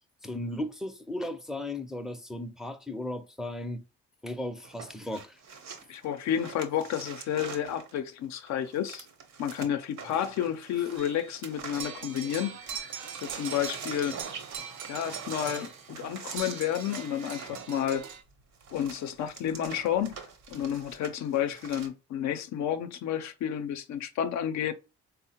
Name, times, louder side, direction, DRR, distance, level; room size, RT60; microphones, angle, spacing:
voice 1, 0.2-3.8 4.2-5.4, left 1 dB, ahead, 0.4 m, -36 dB
sound 1, 4.6-12.4 12.6-21.9, right 6 dB, 65° right, 0.8 m, -44 dB
voice 2, 5.9-9.1 9.4-12.9 13.2-14.2 14.9-18.1 18.7-24.7, left 10 dB, 65° left, 0.5 m, -31 dB
sound 2, 11.0-11.4 11.7-15.9 16.3-18.2, right 8 dB, 90° right, 0.5 m, -41 dB
3.5 x 2.0 x 2.8 m
supercardioid pair, 70°, 30 cm